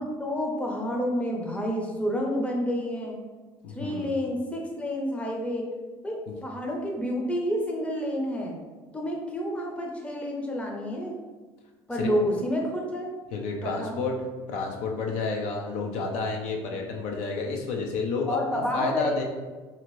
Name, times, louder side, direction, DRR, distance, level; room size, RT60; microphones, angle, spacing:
voice 1, 0.0-3.2 3.7-5.7 6.0-8.6 8.9-11.2 11.9-13.1 13.6-14.0 18.3-19.2, equal, 10° left, 0 dB, 0.6 m, -29 dB
voice 2, 3.6-4.1 11.9-12.1 13.3-14.1 14.5-19.2, left 4 dB, 75° left, 1 dB, 0.5 m, -30 dB
2.8 x 2.5 x 3.0 m, 1.3 s
supercardioid pair, 80°, 12 cm